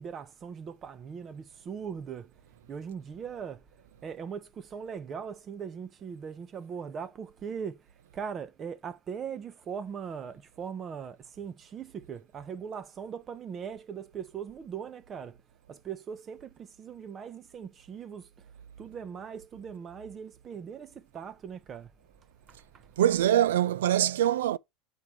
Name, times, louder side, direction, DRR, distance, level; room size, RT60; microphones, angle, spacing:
voice 1, 0.0-2.4 2.7-3.7 4.0-15.4 15.7-18.3 18.8-21.9 22.5-22.9, right 7 dB, 30° right, 0.8 m, -40 dB
voice 2, 23.0-24.6, right 11 dB, 90° right, 0.4 m, -23 dB
7.3 x 4.7 x 3.4 m
supercardioid pair, 125°, 0 cm